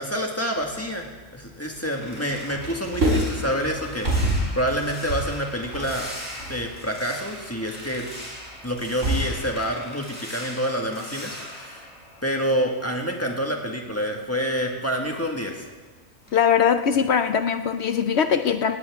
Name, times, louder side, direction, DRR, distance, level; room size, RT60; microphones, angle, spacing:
voice 1, 0.0-6.1 6.5-8.1 8.6-11.9 12.2-15.6, equal, 10° left, 1 dB, 1.6 m, -28 dB
sound 1, 0.6-2.1 2.4-9.4, right 1 dB, 60° right, 3.8 m, -28 dB
sound 2, 1.4-12.9 13.2-15.9 16.2-16.5 16.9-17.2, equal, 25° left, 5.5 m, -41 dB
voice 2, 16.3-18.8, left 7 dB, 60° left, 9 dB, 0.8 m, -21 dB
18.0 x 17.0 x 3.6 m, 1.3 s
omnidirectional pair, 1.4 m